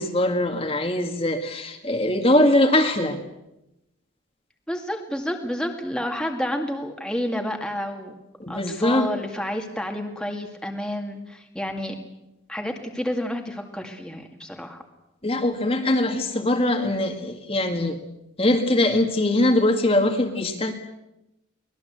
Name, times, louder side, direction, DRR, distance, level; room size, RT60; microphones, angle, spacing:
voice 1, 0.0-3.2 8.4-9.1 15.2-18.0 18.4-20.7, left 1 dB, 30° left, 4 dB, 2.0 m, -22 dB
voice 2, 4.7-8.1 8.5-12.0 12.5-14.8, equal, 5° left, 3 dB, 2.2 m, -30 dB
24.0 x 19.5 x 8.1 m, 0.93 s
head